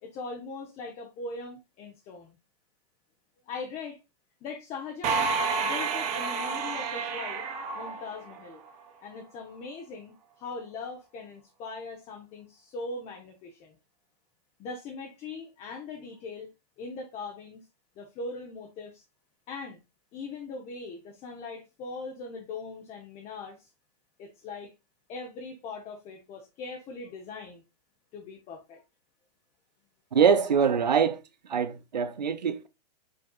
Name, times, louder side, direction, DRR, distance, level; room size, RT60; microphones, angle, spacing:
voice 1, 0.0-2.3 3.5-4.0 4.4-5.3 5.6-7.5 7.7-8.6 9.0-13.8 14.6-16.5 16.8-17.7 18.0-19.0 19.5-19.8 20.1-23.7 24.2-24.7 25.1-27.6 28.1-28.8, left 3 dB, 30° left, 0.8 m, -40 dB
sound 1, 5.0-8.7, right 5 dB, 35° right, 0.8 m, -30 dB
voice 2, 30.1-31.2 31.5-32.7, right 7 dB, 85° right, 0.5 m, -23 dB
5.3 x 3.6 x 2.2 m
hypercardioid pair, 110°, 21 cm